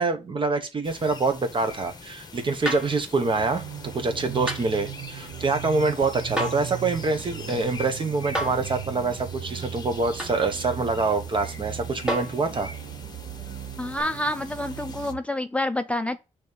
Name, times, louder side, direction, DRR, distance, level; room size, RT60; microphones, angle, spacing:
voice 1, 0.0-12.7, right 3 dB, 40° right, 1.1 m, -26 dB
sound 1, 0.8-15.1, left 4 dB, 30° left, 1.0 m, -43 dB
sound 2, 2.7-3.0 4.5-4.7 6.4-6.7 8.3-8.7 10.2-10.4 12.1-12.4 14.0-14.1, equal, 5° right, 1.4 m, -29 dB
sound 3, 3.2-15.2, right 12 dB, 85° right, 0.5 m, -38 dB
voice 2, 13.8-16.2, left 1 dB, 10° left, 0.4 m, -28 dB
6.3 x 3.2 x 5.4 m
cardioid pair, 95°, 13 cm